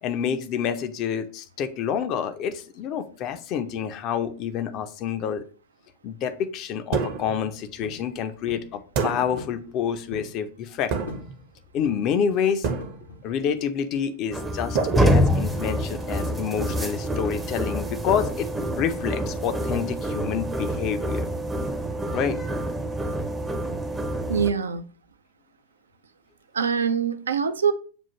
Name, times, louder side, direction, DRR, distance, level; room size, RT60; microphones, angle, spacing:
voice 1, 0.0-5.4 6.0-10.9 11.7-12.7 13.2-18.5 18.8-21.3 22.1-22.4, left 8 dB, 40° left, 0.5 m, -28 dB
sound 1, 6.9-7.5 8.9-9.5 10.9-11.4 12.6-13.2 14.7-15.7, right 5 dB, 45° right, 0.7 m, -28 dB
sound 2, 7.8-8.1 8.5-8.7 9.4-9.6 9.9-10.4 11.1-11.4 11.8-12.2 12.8-13.3, left 3 dB, 70° left, 0.8 m, -40 dB
sound 3, 14.3-24.5, equal, 10° right, 0.6 m, -26 dB
voice 2, 24.3-24.8 26.5-27.7, right 7 dB, 70° right, 0.3 m, -24 dB
7.0 x 2.4 x 2.9 m
figure-of-eight pair, 90°, 0 cm